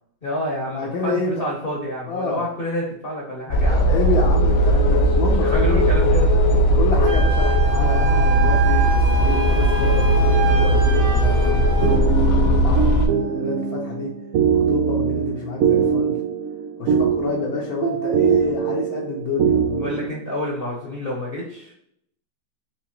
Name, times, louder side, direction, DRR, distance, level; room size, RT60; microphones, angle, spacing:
voice 1, 0.2-3.9 5.4-6.5 19.8-21.7, equal, 40° left, -3 dB, 0.9 m, -28 dB
voice 2, 0.7-1.4 2.1-2.4 3.8-5.8 6.7-14.1 14.7-16.2 16.8-19.9, left 4 dB, 65° left, -2 dB, 1.1 m, -28 dB
sound 1, 3.5-13.1, right 1 dB, 80° left, 0.5 m, -17 dB
Wind instrument woodwind instrument, 7.0-12.0, right 4 dB, 85° right, 1.5 m, -27 dB
sound 2, 11.6-20.1, right 7 dB, 70° right, 0.9 m, -22 dB
4.8 x 3.0 x 3.0 m, 0.71 s
omnidirectional pair, 1.9 m